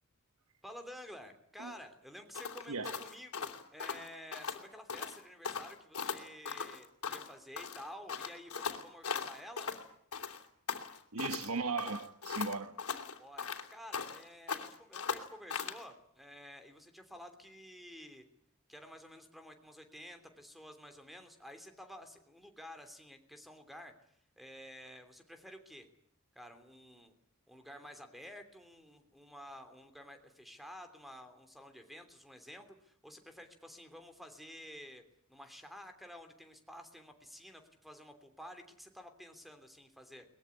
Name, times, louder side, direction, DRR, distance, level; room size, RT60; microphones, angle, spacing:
voice 1, 0.6-9.7 13.2-18.2 18.7-25.9 26.3-27.1 27.5-35.0 35.3-40.2, equal, ahead, 3.1 m, -51 dB
sound 1, 2.3-4.6 4.9-5.2 5.4-7.3 7.6-9.8 10.1-11.5 11.8-14.2 14.5-15.8, left 6 dB, 85° left, 3.1 m, -39 dB
voice 2, 2.7-3.0 11.1-12.8, right 4 dB, 75° right, 1.4 m, -37 dB
22.5 x 20.5 x 9.8 m
head